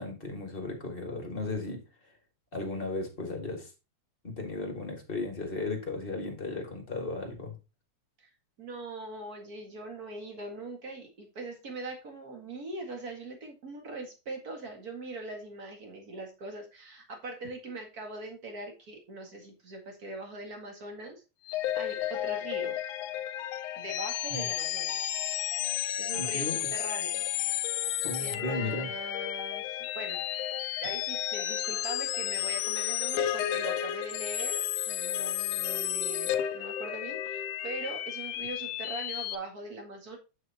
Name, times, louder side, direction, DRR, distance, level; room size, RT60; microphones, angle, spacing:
voice 1, 0.0-1.8 2.5-3.7 4.2-7.5 24.3-24.5 26.1-26.7 28.0-28.9, left 2 dB, 25° left, 2 dB, 1.5 m, -35 dB
voice 2, 8.6-21.2 21.7-22.8 23.8-25.0 26.0-27.2 28.2-30.5 30.8-40.2, right 2 dB, 35° right, 3 dB, 2.1 m, -41 dB
sound 1, 21.5-39.4, left 12 dB, 85° left, 2.1 m, -32 dB
8.1 x 7.9 x 2.9 m, 0.29 s
omnidirectional pair, 3.4 m